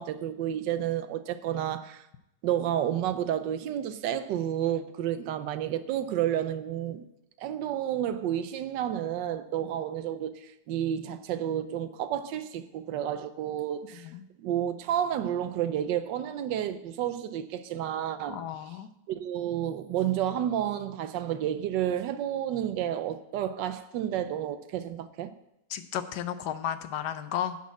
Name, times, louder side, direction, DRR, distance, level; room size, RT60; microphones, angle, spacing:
voice 1, 0.0-2.0 2.4-7.1 7.4-14.1 14.4-18.4 19.1-25.3, right 10 dB, 85° right, 1.3 m, -30 dB
voice 2, 13.9-14.2 18.3-18.9 25.7-27.6, left 10 dB, 75° left, 1.2 m, -33 dB
10.5 x 4.2 x 7.4 m
omnidirectional pair, 1.9 m